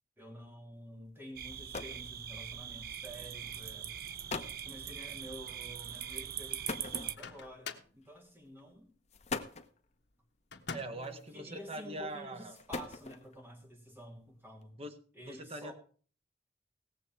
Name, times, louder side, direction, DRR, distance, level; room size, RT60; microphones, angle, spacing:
voice 1, 0.2-3.9 4.6-8.9 10.9-14.8 15.1-15.7, equal, 10° right, 2 dB, 2.7 m, -50 dB
sound 1, 1.1-1.2 1.5-2.1 3.1-3.3 3.9-4.0 4.3-4.6 6.7-7.5 8.5-8.6 9.1-9.8 11.0-11.5 12.4-13.4, left 4 dB, 40° left, 0.9 m, -41 dB
sound 2, 1.4-7.2, right 9 dB, 55° right, 0.6 m, -42 dB
Microwave oven, 6.9-8.0 10.5-11.1, left 5 dB, 75° left, 1.2 m, -45 dB
voice 2, 10.7-12.6 14.8-15.0 15.2-15.7, right 1 dB, 35° right, 7 dB, 1.4 m, -42 dB
18.0 x 7.5 x 4.6 m, 0.42 s
head